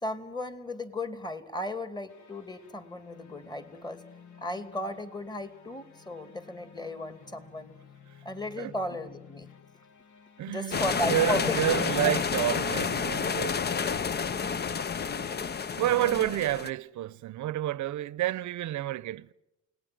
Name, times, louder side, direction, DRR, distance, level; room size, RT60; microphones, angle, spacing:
voice 1, 0.0-4.0 4.4-7.7 8.2-9.5 10.5-11.6 15.9-16.3, left 1 dB, 15° left, 2.6 m, -35 dB
sound 1, 2.1-10.6, left 7 dB, 75° left, 3.0 m, -54 dB
voice 2, 10.4-13.6 15.6-19.3, right 13 dB, 75° right, 0.8 m, -29 dB
sound 2, 10.7-16.7, left 6 dB, 35° left, 0.8 m, -30 dB
29.5 x 19.5 x 7.7 m
cardioid pair, 130°, 30 cm